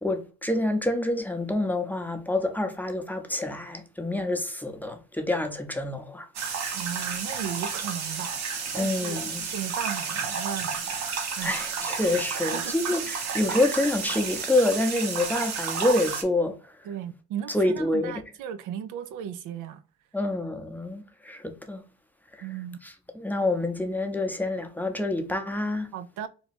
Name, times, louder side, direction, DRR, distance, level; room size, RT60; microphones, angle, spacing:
voice 1, 0.0-6.3 8.7-9.5 11.1-16.7 17.5-18.2 20.1-21.8 22.3-22.5 22.8-25.9, left 2 dB, 5° left, 0.6 m, -27 dB
sound 1, 6.3-16.2, right 6 dB, 60° right, 0.8 m, -31 dB
voice 2, 6.7-9.2 9.5-10.9 11.4-11.6 12.4-12.7 16.9-19.8 22.4-22.8 25.9-26.3, right 9 dB, 85° right, 0.4 m, -36 dB
2.9 x 2.2 x 4.1 m
cardioid pair, 90°, 30 cm